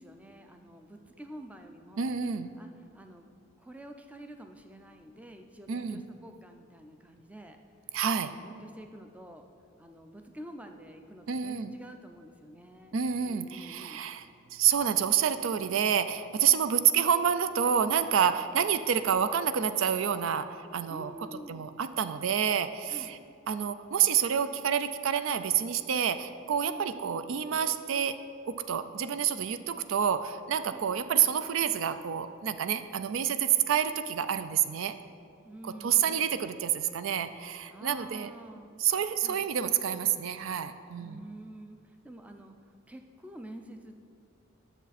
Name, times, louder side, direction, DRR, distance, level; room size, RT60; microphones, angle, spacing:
voice 1, 0.0-2.1 2.6-3.3 3.6-7.6 8.2-9.5 9.8-14.0 20.9-21.7 22.9-23.2 26.6-27.2 30.7-31.0 35.4-36.5 37.7-38.8 39.2-39.4 41.0-42.6 42.9-43.9, right 1 dB, 5° right, 5 dB, 0.4 m, -48 dB
voice 2, 2.0-2.5 5.7-6.0 7.9-8.3 11.3-11.7 12.9-21.1 21.5-23.2 23.5-28.2 28.5-34.9 35.6-38.3 38.8-41.2, right 8 dB, 70° right, 11 dB, 0.4 m, -28 dB
9.9 x 6.9 x 4.1 m, 2.4 s
head